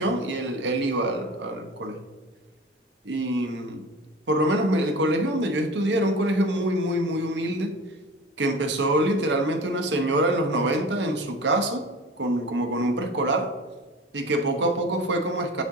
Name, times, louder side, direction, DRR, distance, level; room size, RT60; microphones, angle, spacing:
voice 1, 0.0-2.0 3.0-3.9 4.3-7.8 8.4-11.8 12.2-13.5 14.1-15.6, right 1 dB, 75° right, 4 dB, 1.0 m, -25 dB
9.8 x 4.5 x 3.9 m, 1.3 s
head